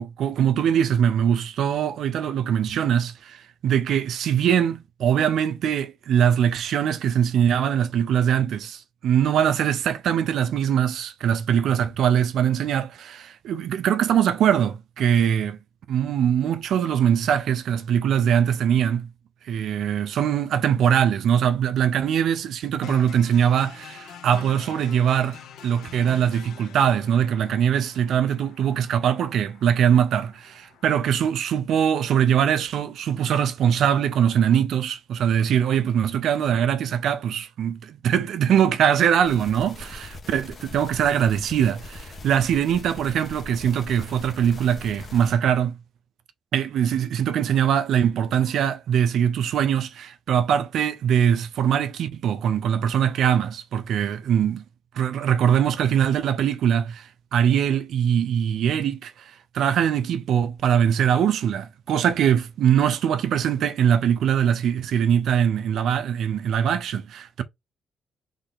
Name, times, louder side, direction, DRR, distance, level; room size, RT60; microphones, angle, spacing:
voice 1, 0.0-15.6 15.9-19.1 19.5-45.8 46.5-54.6 55.0-67.4, right 9 dB, 75° right, 0.6 m, -22 dB
sound 1, 22.8-30.8, left 9 dB, 80° left, 1.1 m, -45 dB
sound 2, 39.2-45.3, left 2 dB, 40° left, 1.5 m, -41 dB
3.7 x 3.3 x 3.9 m
cardioid pair, 90°, 0 cm